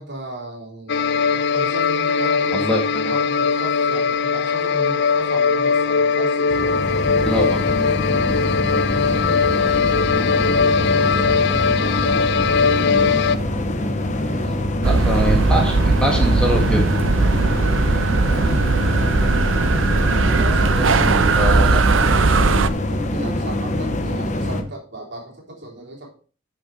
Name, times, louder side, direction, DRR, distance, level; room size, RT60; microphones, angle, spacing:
voice 1, 0.0-2.7 3.1-7.2 8.4-9.0 10.1-12.3 14.2-14.9 17.4-18.2 19.4-19.8 20.2-21.8 22.4-26.2, right 1 dB, 60° right, -2 dB, 3.6 m, -35 dB
sound 1, 0.9-13.4, left 5 dB, 60° left, 0.4 m, -20 dB
voice 2, 2.5-3.0 7.2-7.6 14.8-16.9 20.7-20.9 21.4-21.8, equal, 5° left, 0 dB, 2.0 m, -23 dB
sound 2, 6.5-24.6, left 1 dB, 40° left, 1.0 m, -24 dB
sound 3, 14.8-22.7, right 3 dB, 80° right, 0.7 m, -18 dB
9.9 x 6.2 x 4.6 m, 0.39 s
head